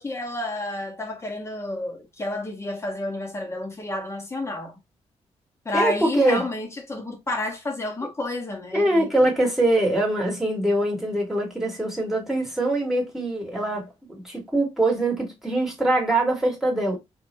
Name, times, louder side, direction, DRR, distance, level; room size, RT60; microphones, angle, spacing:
voice 1, 0.0-4.8 5.7-9.3, left 2 dB, 25° left, 1.6 m, -30 dB
voice 2, 5.7-6.4 8.7-17.0, right 1 dB, 5° right, 2.2 m, -23 dB
4.2 x 3.0 x 3.1 m
cardioid pair, 105°, 12 cm